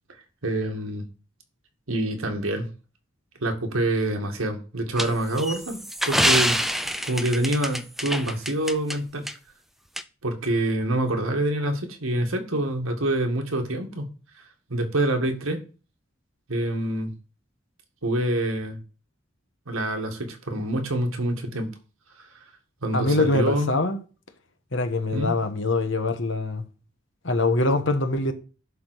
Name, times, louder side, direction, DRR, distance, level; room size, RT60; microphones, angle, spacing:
voice 1, 0.4-1.1 1.9-2.7 3.4-6.6 7.0-9.3 10.2-14.1 14.7-15.6 16.5-17.1 18.0-18.8 19.7-21.7 22.8-23.7 25.1-25.3, right 1 dB, 90° right, 1.8 m, -26 dB
sound 1, 5.0-9.0 9.3-9.4 10.0-10.1, equal, ahead, 0.4 m, -25 dB
voice 2, 22.9-24.0 24.7-26.6 27.2-28.3, left 2 dB, 65° left, 1.3 m, -23 dB
11.5 x 3.8 x 6.2 m
head